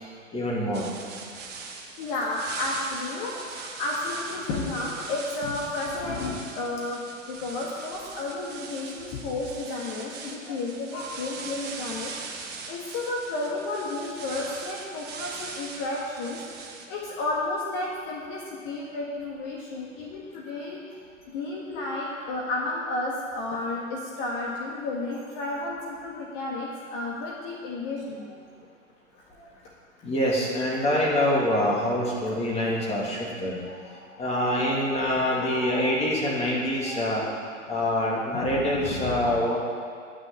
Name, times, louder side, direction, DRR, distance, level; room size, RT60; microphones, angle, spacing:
voice 1, 0.3-0.9 30.0-33.6 34.2-37.2 37.7-39.6, left 1 dB, 15° left, -4 dB, 2.7 m, -25 dB
sound 1, 0.7-16.9, right 4 dB, 25° right, 1.5 m, -40 dB
voice 2, 2.0-20.8 21.3-28.4 29.1-29.5 32.8-32.9 33.6-36.0 36.4-36.5 36.8-37.4 37.8-38.0 38.3-39.6, left 2 dB, 40° left, -3 dB, 1.9 m, -32 dB
11.0 x 6.5 x 8.8 m, 2.1 s
hypercardioid pair, 115°, 40 cm